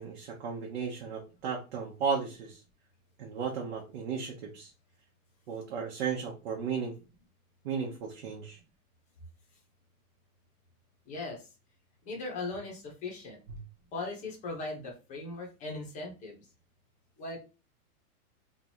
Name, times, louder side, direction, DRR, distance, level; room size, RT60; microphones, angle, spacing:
voice 1, 0.0-2.6 3.2-4.7 5.5-6.9 7.6-8.6, right 6 dB, 45° right, -1 dB, 0.8 m, -34 dB
voice 2, 11.1-11.5 12.0-13.4 13.9-16.5 17.2-17.4, left 3 dB, 15° left, 0 dB, 0.9 m, -39 dB
3.0 x 2.5 x 4.3 m, 0.31 s
supercardioid pair, 165°, 45 cm